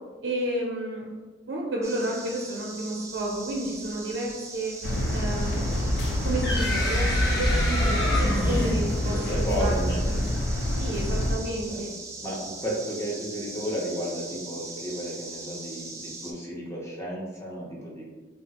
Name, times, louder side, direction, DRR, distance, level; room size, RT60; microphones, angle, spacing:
voice 1, 0.2-1.1 1.5-4.8 5.1-5.8 6.2-9.8 10.1-10.2 10.8-11.9, right 1 dB, 75° right, -2 dB, 0.5 m, -31 dB
sound 1, 1.8-16.3, right 3 dB, 15° right, 0.4 m, -41 dB
sound 2, 4.8-11.4, left 1 dB, 85° left, 0.5 m, -26 dB
sound 3, 5.9-9.6, left 1 dB, 65° left, 1.1 m, -29 dB
voice 2, 9.0-10.8 11.7-11.9 12.2-18.0, equal, 15° left, -4 dB, 0.7 m, -33 dB
3.3 x 2.3 x 2.8 m, 1.4 s
head